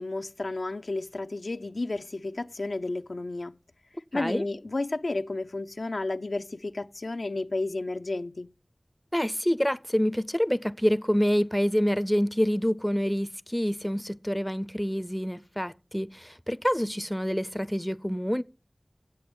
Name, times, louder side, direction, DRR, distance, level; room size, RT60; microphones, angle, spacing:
voice 1, 0.0-3.5 4.1-8.5, left 2 dB, 80° left, 0.4 m, -32 dB
voice 2, 4.1-4.5 9.1-18.4, equal, 5° left, 0.4 m, -27 dB
8.4 x 7.8 x 6.1 m
wide cardioid pair, 40°, 0 cm